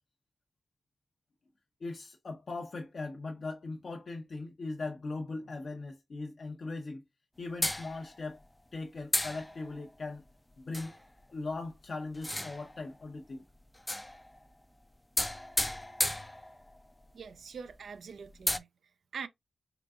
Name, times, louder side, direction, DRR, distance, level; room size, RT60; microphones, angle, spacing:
voice 1, 1.8-7.0 7.4-8.4 8.7-10.2 10.6-11.0 11.3-13.4, left 3 dB, 65° left, 0.6 m, -39 dB
sound 1, 7.6-8.4 9.1-9.9 10.7-11.0 12.1-12.9 13.8-14.4 15.2-16.9 17.3-17.4 17.7-17.8 18.3-18.6, left 1 dB, 15° left, 0.4 m, -34 dB
voice 2, 17.1-18.7 19.1-19.3, right 6 dB, 85° right, 0.4 m, -43 dB
3.8 x 3.3 x 2.3 m
cardioid pair, 50°, 0 cm